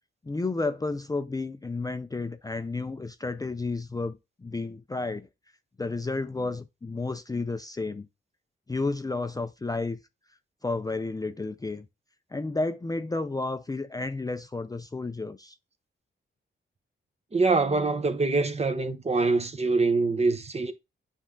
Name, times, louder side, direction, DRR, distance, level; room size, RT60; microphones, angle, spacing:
voice 1, 0.2-5.3 5.8-8.1 8.7-10.0 10.6-11.9 12.3-15.5, left 3 dB, 20° left, 0.5 m, -31 dB
voice 2, 17.3-20.7, right 3 dB, 30° right, 0.9 m, -24 dB
9.0 x 3.6 x 3.8 m
cardioid pair, 95°, 21 cm